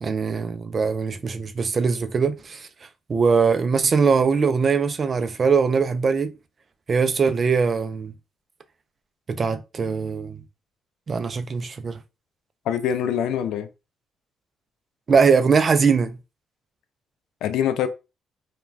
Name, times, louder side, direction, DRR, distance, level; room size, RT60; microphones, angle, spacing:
voice 1, 0.0-2.7 3.1-6.3 6.9-8.1 9.3-10.4 11.1-12.0 15.1-16.2, right 5 dB, 40° right, 0.4 m, -21 dB
voice 2, 12.7-13.7 17.4-17.9, left 9 dB, 85° left, 0.3 m, -24 dB
2.3 x 2.2 x 3.2 m
cardioid pair, 90°, 0 cm